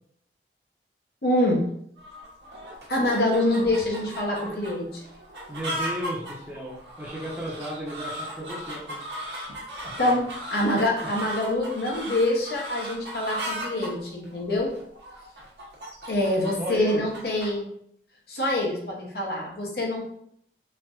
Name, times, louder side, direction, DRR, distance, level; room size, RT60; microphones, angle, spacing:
voice 1, 1.2-1.6 2.9-5.0 10.0-14.7 16.1-17.7 18.3-20.0, left 1 dB, 65° left, -1 dB, 0.8 m, -25 dB
sound 1, 2.0-17.6, equal, 80° right, 0.9 m, -37 dB
voice 2, 5.5-9.0 9.8-10.2 16.6-17.0, right 1 dB, 15° right, -5 dB, 0.7 m, -34 dB
4.4 x 2.5 x 2.4 m, 0.69 s
head